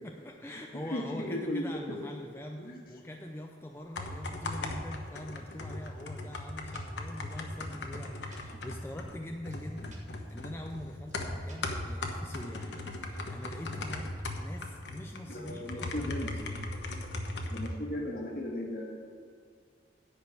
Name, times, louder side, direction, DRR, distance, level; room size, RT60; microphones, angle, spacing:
voice 1, 0.0-10.0 10.3-16.7, left 1 dB, 15° left, 2 dB, 0.5 m, -43 dB
voice 2, 0.7-1.8 2.6-2.8 15.3-16.3 17.5-18.8, left 1 dB, 55° left, 0 dB, 1.7 m, -36 dB
sound 1, 3.8-17.7, left 2 dB, 75° left, 1.1 m, -38 dB
sound 2, 6.3-6.4 6.7-6.8 7.1-7.2 7.5-7.6 7.9-8.4 8.7-8.8 9.1-9.2 9.5-9.6 9.9-10.0 10.3-10.4 10.7-10.8 11.1-11.2 11.5-12.1, right 1 dB, 40° right, 1.5 m, -53 dB
10.5 x 5.1 x 8.3 m, 2.1 s
head